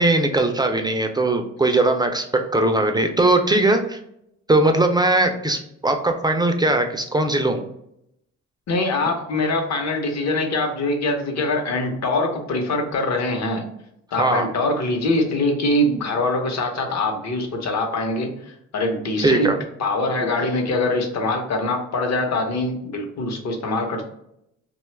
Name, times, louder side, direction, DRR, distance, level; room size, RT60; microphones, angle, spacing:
voice 1, 0.0-2.2 2.5-4.0 4.5-5.6 5.8-7.6 14.2-14.4 19.2-19.6, right 2 dB, 15° right, 5 dB, 0.3 m, -19 dB
voice 2, 8.7-13.7 14.1-19.5 19.8-24.0, left 2 dB, 60° left, 3 dB, 0.8 m, -23 dB
2.8 x 2.3 x 3.2 m, 0.77 s
cardioid pair, 90°, 30 cm